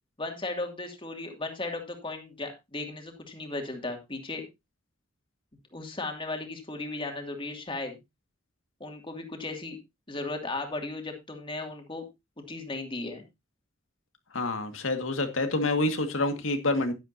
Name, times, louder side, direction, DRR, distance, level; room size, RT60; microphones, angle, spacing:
voice 1, 0.2-4.4 5.7-8.0 8.8-9.8 10.1-12.0 12.5-13.2, left 2 dB, 25° left, 2.4 m, -36 dB
voice 2, 14.3-16.9, left 2 dB, 90° left, 1.9 m, -27 dB
11.0 x 11.0 x 2.8 m
head